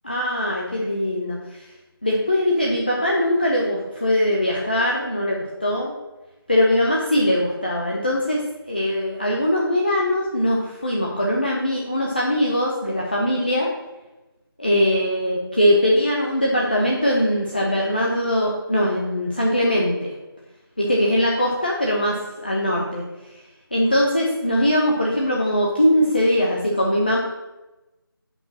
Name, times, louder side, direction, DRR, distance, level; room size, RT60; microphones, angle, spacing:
voice 1, 0.0-1.6 2.0-5.9 6.5-13.7 14.6-20.1 20.8-23.0 23.7-27.2, left 1 dB, 25° left, -3 dB, 0.5 m, -21 dB
5.3 x 4.3 x 6.0 m, 1.1 s
figure-of-eight pair, 165°, 13 cm